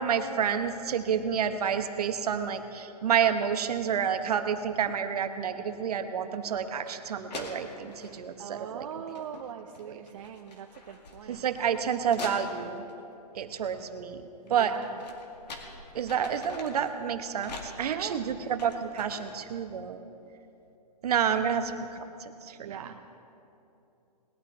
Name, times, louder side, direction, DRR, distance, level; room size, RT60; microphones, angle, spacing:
voice 1, 0.0-8.9 9.8-10.0 11.3-12.8 13.3-14.2 14.5-14.8 15.9-20.0 21.0-22.9, right 7 dB, 65° right, 8 dB, 1.1 m, -29 dB
sound 1, 6.9-7.0 7.3-8.3 9.0-9.5 9.7-12.9 14.5-16.9 17.4-19.5, left 2 dB, 80° left, 2.2 m, -44 dB
voice 2, 8.4-11.5 14.4-15.0 17.8-18.3 22.6-23.2, right 8 dB, 50° right, 4 dB, 0.6 m, -41 dB
20.0 x 12.0 x 3.4 m, 2.8 s
hypercardioid pair, 155°, 21 cm